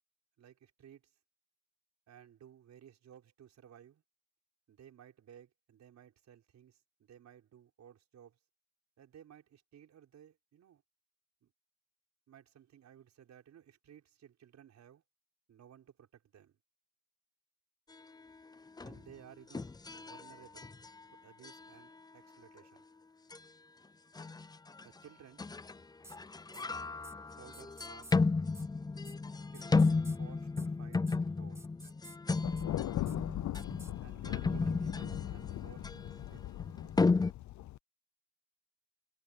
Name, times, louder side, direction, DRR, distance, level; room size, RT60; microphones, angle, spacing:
voice 1, 0.4-1.1 2.1-4.0 4.7-8.4 9.0-10.8 11.4-11.5 12.3-15.0 15.5-16.5 18.8-20.7 21.2-22.8 24.8-25.5 26.5-26.9 27.4-28.1 29.5-31.6 34.0-35.9 36.3-36.5, right 9 dB, 70° right, 5.5 m, -58 dB
sound 1, 18.8-19.1 19.5-21.0 21.4-21.7 23.3-23.4 24.2-24.8 25.4-25.8 26.1-37.3, left 4 dB, 15° left, 0.5 m, -33 dB
sound 2, 26.0-26.2 26.5-26.7 27.0-27.1 27.5-28.2 28.5-28.7 29.0-29.2 29.5-30.2 30.6-30.7 30.9-31.2 31.6-32.2 32.6-32.7 33.1-33.2 33.5-33.9, right 2 dB, 10° right, 1.0 m, -53 dB
Thunder, 32.4-37.8, left 14 dB, 75° left, 0.6 m, -39 dB
cardioid pair, 125°, 29 cm